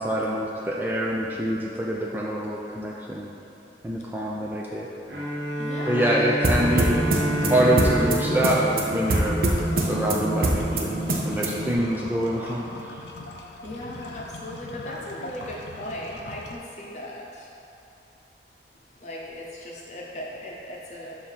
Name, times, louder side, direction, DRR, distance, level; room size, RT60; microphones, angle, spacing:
voice 1, 0.0-3.3 3.8-4.9 5.9-7.1 7.5-9.4 9.9-11.0 11.2-12.9, right 1 dB, 10° right, -3 dB, 0.4 m, -25 dB
Bowed string instrument, 5.1-10.0, right 1 dB, 75° right, 1.0 m, -29 dB
voice 2, 5.6-6.4 13.6-17.5 19.0-21.2, left 1 dB, 40° left, -3 dB, 0.8 m, -37 dB
sound 1, 6.4-11.8, right 1 dB, 50° right, 0.6 m, -25 dB
sound 2, 7.3-16.6, left 2 dB, 75° left, 0.5 m, -42 dB
6.7 x 2.7 x 5.6 m, 3.0 s
head